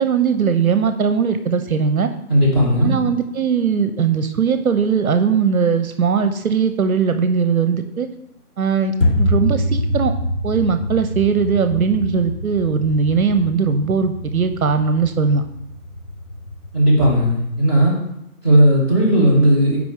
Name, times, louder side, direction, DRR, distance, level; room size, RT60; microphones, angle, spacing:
voice 1, 0.0-2.1 2.8-8.1 8.6-10.1 10.4-15.4, right 6 dB, 65° right, 9 dB, 0.6 m, -19 dB
voice 2, 2.3-3.0 16.7-17.9 18.4-19.8, equal, 15° left, -9 dB, 1.8 m, -15 dB
sound 1, 9.0-17.3, left 1 dB, 55° left, 2.5 m, -25 dB
6.0 x 4.9 x 3.5 m, 0.79 s
figure-of-eight pair, 170°, 45 cm